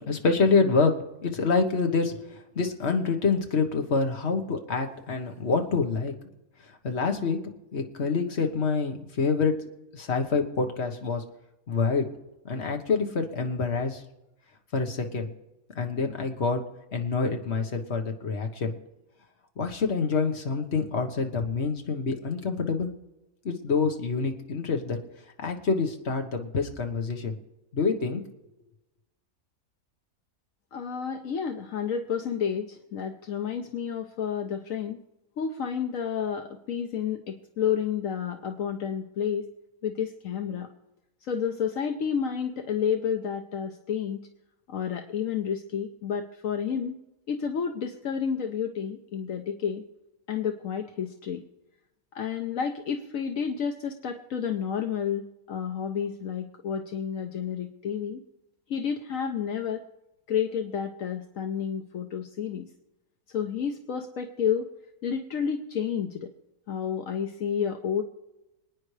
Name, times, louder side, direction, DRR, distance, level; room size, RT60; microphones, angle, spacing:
voice 1, 0.1-6.1 6.8-7.4 7.7-9.5 9.9-11.2 11.7-12.1 12.4-14.0 14.7-15.3 15.7-16.6 16.9-18.7 19.6-22.9 23.4-25.0 25.4-27.3 27.7-28.2, left 4 dB, 50° left, 4 dB, 1.6 m, -26 dB
voice 2, 30.7-35.0 35.4-39.5 39.8-40.7 41.2-44.3 44.7-47.0 47.3-49.8 50.3-51.4 52.1-58.2 58.7-59.8 60.3-62.7 63.3-64.7 65.0-66.3 66.7-68.0, left 7 dB, 70° left, 4 dB, 1.2 m, -30 dB
26.5 x 9.5 x 3.3 m, 0.96 s
omnidirectional pair, 1.5 m